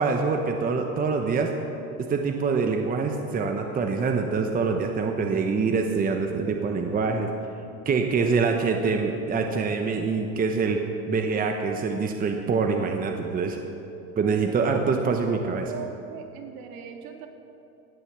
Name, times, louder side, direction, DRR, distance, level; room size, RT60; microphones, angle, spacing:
voice 1, 0.0-1.5 2.1-7.3 7.8-10.8 11.1-13.6 14.2-15.7, right 4 dB, 20° right, 4 dB, 0.9 m, -25 dB
voice 2, 7.8-8.3 8.7-8.8 14.2-14.6 15.3-15.4 15.7-17.3, right 8 dB, 60° right, 3 dB, 2.1 m, -41 dB
17.0 x 7.0 x 7.4 m, 2.9 s
supercardioid pair, 120°, 43 cm